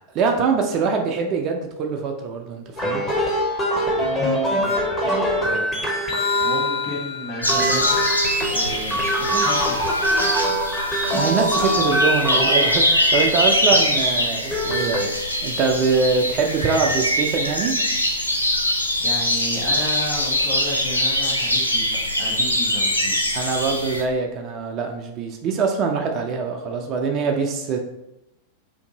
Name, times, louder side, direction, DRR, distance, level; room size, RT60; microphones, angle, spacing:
voice 1, 0.2-3.0 11.1-17.8 23.3-27.8, right 5 dB, 35° right, 3 dB, 0.4 m, -23 dB
sound 1, 2.8-13.2 14.3-15.1, equal, 15° left, 0.7 m, -23 dB
voice 2, 4.5-5.7 6.4-8.1 8.5-9.9 19.0-23.4, equal, 35° left, -2 dB, 1.1 m, -33 dB
sound 2, 7.4-24.0, left 1 dB, 90° left, 0.4 m, -23 dB
2.6 x 2.6 x 3.7 m, 0.88 s
figure-of-eight pair, 90°, 0 cm